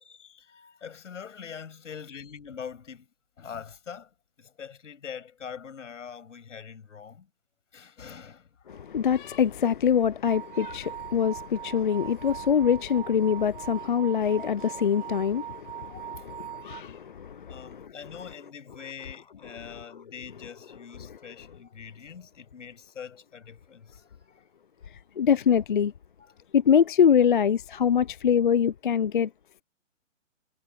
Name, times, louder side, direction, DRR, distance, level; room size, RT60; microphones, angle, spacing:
voice 1, 0.0-3.1 3.4-4.1 4.4-7.3 7.7-8.9 10.8-10.9 11.6-12.0 15.8-16.3 17.5-24.4 26.2-26.3, left 7 dB, 70° left, 7.1 m, -44 dB
voice 2, 8.7-17.9 25.2-25.9 26.5-29.3, left 8 dB, 45° left, 0.4 m, -24 dB
sound 1, 10.2-16.8, right 14 dB, 15° right, 2.0 m, -41 dB
hypercardioid pair, 160°, 38 cm